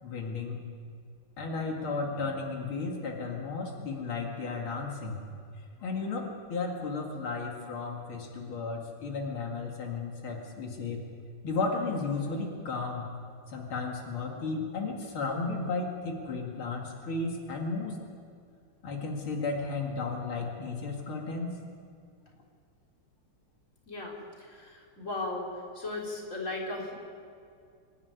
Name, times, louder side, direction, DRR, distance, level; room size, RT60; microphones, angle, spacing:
voice 1, 0.0-0.6 1.4-5.2 5.8-11.0 11.4-13.1 13.5-18.0 18.8-21.6, left 4 dB, 90° left, 0 dB, 3.0 m, -34 dB
voice 2, 24.4-25.4 25.7-26.9, left 2 dB, 35° left, -2 dB, 4.2 m, -36 dB
26.0 x 12.0 x 9.6 m, 2.3 s
omnidirectional pair, 2.2 m